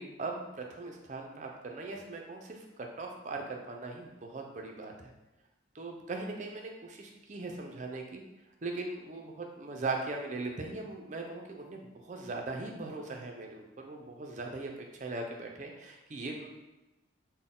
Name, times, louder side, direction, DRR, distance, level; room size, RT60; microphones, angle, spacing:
voice 1, 0.0-5.1 5.7-8.2 8.6-16.5, right 3 dB, 40° right, 2 dB, 0.5 m, -39 dB
4.0 x 2.1 x 3.7 m, 1.0 s
head